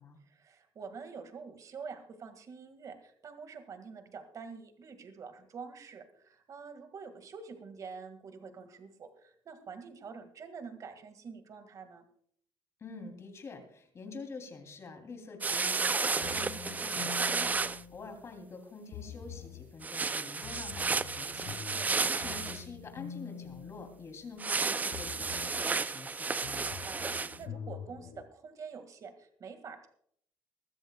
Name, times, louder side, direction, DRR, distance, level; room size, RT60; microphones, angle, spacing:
voice 1, 0.3-12.0 21.7-22.3 26.6-29.9, right 5 dB, 40° right, 8 dB, 1.9 m, -47 dB
voice 2, 12.8-21.5 22.0-26.4, left 4 dB, 35° left, 4 dB, 3.0 m, -46 dB
sound 1, 15.4-17.8 19.8-22.6 24.4-27.4, right 4 dB, 20° right, 0.4 m, -32 dB
sound 2, 16.2-18.5 18.9-19.8 20.4-24.5 24.9-25.7 26.4-28.2, left 8 dB, 85° left, 5.5 m, -46 dB
22.0 x 14.5 x 2.3 m, 0.63 s
cardioid pair, 135°, 9 cm